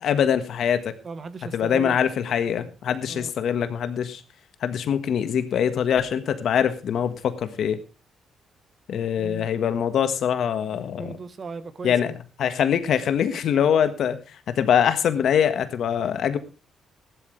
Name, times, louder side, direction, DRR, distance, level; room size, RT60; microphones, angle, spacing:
voice 1, 0.0-0.9 1.5-4.2 4.6-7.8 8.9-11.2 11.8-12.1 12.4-14.2 14.5-16.4, left 8 dB, 65° left, 1.5 m, -23 dB
voice 2, 1.0-2.0 3.1-3.3 9.2-9.5 11.0-12.2, right 4 dB, 40° right, 1.2 m, -37 dB
15.0 x 11.5 x 3.3 m
cardioid pair, 90°, 0 cm